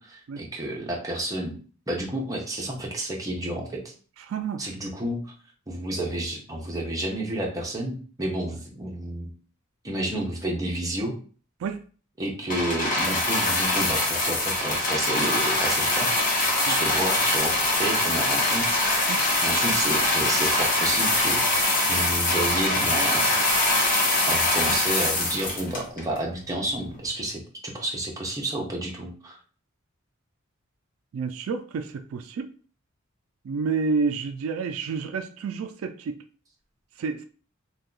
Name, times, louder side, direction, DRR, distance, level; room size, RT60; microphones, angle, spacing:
voice 1, 0.0-1.6 1.9-3.9 4.6-5.3 5.7-9.3 9.8-11.2 12.2-16.1 16.7-18.8 19.4-21.4 21.9-23.4 24.3-29.4, right 1 dB, 15° right, -2 dB, 0.8 m, -30 dB
voice 2, 4.3-4.6 11.6-11.8 16.7-16.8 19.1-19.2 31.1-32.5 33.4-36.2 37.0-37.2, right 5 dB, 85° right, 8 dB, 0.3 m, -29 dB
sound 1, 12.5-26.2 26.9-27.0, left 2 dB, 40° left, 1.0 m, -23 dB
2.7 x 2.3 x 3.7 m, 0.40 s
head